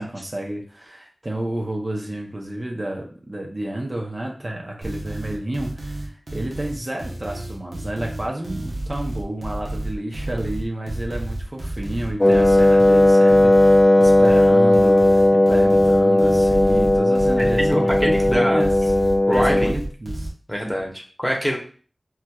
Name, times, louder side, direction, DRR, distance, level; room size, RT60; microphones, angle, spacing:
voice 1, 0.0-18.9 19.3-20.3, right 1 dB, 40° right, -1 dB, 0.6 m, -30 dB
sound 1, 4.8-20.3, right 1 dB, 75° right, 0.8 m, -31 dB
Wind instrument woodwind instrument, 12.2-19.8, left 1 dB, 25° left, 0.5 m, -16 dB
voice 2, 17.4-18.7 19.3-19.7 20.5-21.6, equal, 10° left, -1 dB, 0.9 m, -24 dB
4.3 x 2.2 x 2.3 m, 0.42 s
cardioid pair, 40°, 0 cm